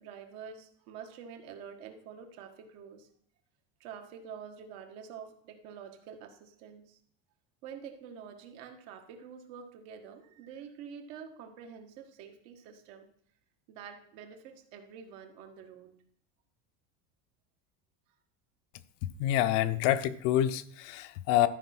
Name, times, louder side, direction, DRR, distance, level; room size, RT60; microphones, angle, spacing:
voice 1, 0.0-3.1 3.8-7.0 7.6-13.1 13.7-16.0, right 7 dB, 60° right, 5 dB, 1.7 m, -47 dB
voice 2, 19.2-21.5, left 12 dB, 65° left, 12 dB, 0.8 m, -27 dB
13.0 x 5.2 x 6.0 m, 0.63 s
cardioid pair, 170°, 38 cm